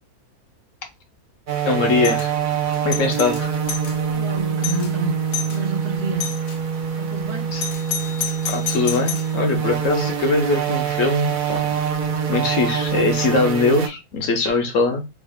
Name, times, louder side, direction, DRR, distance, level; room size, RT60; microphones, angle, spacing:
sound 1, 1.5-13.9, right 7 dB, 60° right, 0.5 m, -25 dB
voice 1, 1.6-2.3 2.8-3.6 7.5-7.6 8.5-11.8 12.3-15.0, left 3 dB, 65° left, 1.0 m, -21 dB
Doorbell, 2.0-2.3 2.7-4.0 4.3-4.4 4.6-4.9 5.3-5.6 6.2-6.6 7.6-9.3, left 9 dB, 90° left, 1.2 m, -29 dB
voice 2, 4.1-5.2 5.5-6.3 7.0-7.5, right 2 dB, 80° right, 1.5 m, -29 dB
3.6 x 2.3 x 3.4 m
omnidirectional pair, 1.6 m